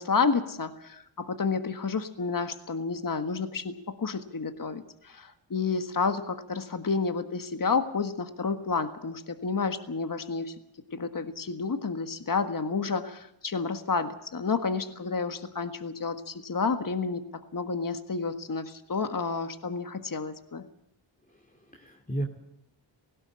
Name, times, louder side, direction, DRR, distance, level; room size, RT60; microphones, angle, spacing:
voice 1, 0.0-10.5 10.9-20.6, left 4 dB, 45° left, 8 dB, 1.6 m, -30 dB
voice 2, 21.3-22.3, right 1 dB, 15° left, 0 dB, 2.7 m, -35 dB
18.5 x 16.5 x 8.8 m, 0.79 s
cardioid pair, 55°, 47 cm